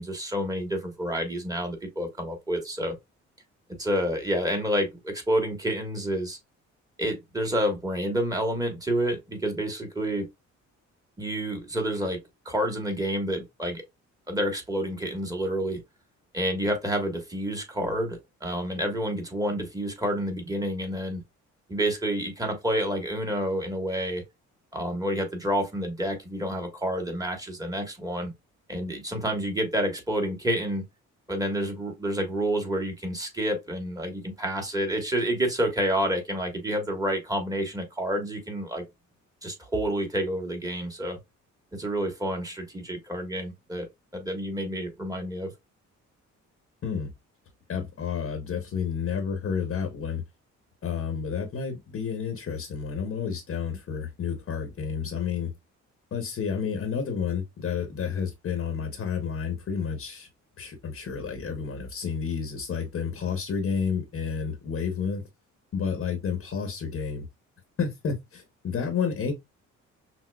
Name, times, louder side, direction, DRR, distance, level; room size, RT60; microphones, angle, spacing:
voice 1, 0.0-2.9 3.8-6.4 7.0-10.3 11.2-13.8 14.3-15.8 16.3-21.2 21.7-24.2 24.7-28.3 28.7-30.8 31.3-38.8 39.4-41.2 41.7-43.9 44.1-45.5, equal, 10° right, 1.3 m, -29 dB
voice 2, 47.7-50.2 50.8-55.5 56.1-60.3 60.6-65.2 65.7-67.2 67.8-69.3, left 6 dB, 50° left, 0.9 m, -30 dB
5.9 x 2.0 x 2.2 m
cardioid pair, 90°, 30 cm